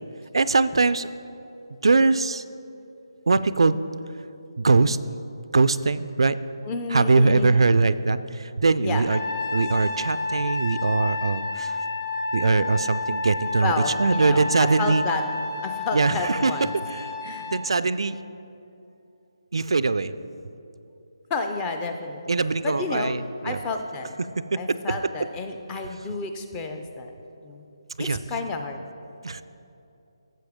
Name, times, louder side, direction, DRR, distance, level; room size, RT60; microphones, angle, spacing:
voice 1, 0.3-1.1 1.8-2.4 3.3-3.8 4.6-5.0 5.5-6.4 6.9-9.2 9.5-11.8 12.3-13.7 14.0-15.0 15.9-16.5 17.5-18.2 19.5-20.1 22.3-23.6 24.7-24.8 28.0-28.2 29.2-29.4, right 3 dB, 75° right, 14 dB, 0.3 m, -21 dB
voice 2, 6.6-7.6 8.8-9.0 13.6-15.2 15.6-16.8 17.2-17.5 21.3-22.2 22.6-23.2 23.4-24.2 24.6-27.1 27.4-27.6 28.0-28.8, left 3 dB, 15° left, 5 dB, 0.5 m, -30 dB
Trumpet, 9.1-17.7, left 3 dB, 35° left, 0.9 m, -30 dB
13.0 x 7.5 x 3.6 m, 2.8 s
figure-of-eight pair, 160°, 3 cm